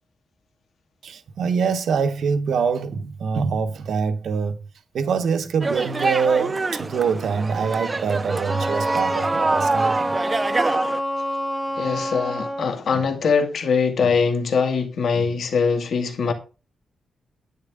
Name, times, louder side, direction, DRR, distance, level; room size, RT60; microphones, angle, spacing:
voice 1, 1.0-4.6 4.9-10.1, right 6 dB, 65° right, 1.1 m, -24 dB
sound 1, 5.6-11.0, right 3 dB, 20° right, 0.6 m, -25 dB
Wind instrument woodwind instrument, 8.5-12.8, equal, 5° right, 1.0 m, -27 dB
voice 2, 11.8-16.3, left 5 dB, 60° left, 2.1 m, -22 dB
10.5 x 9.3 x 3.8 m
wide cardioid pair, 165°, 0 cm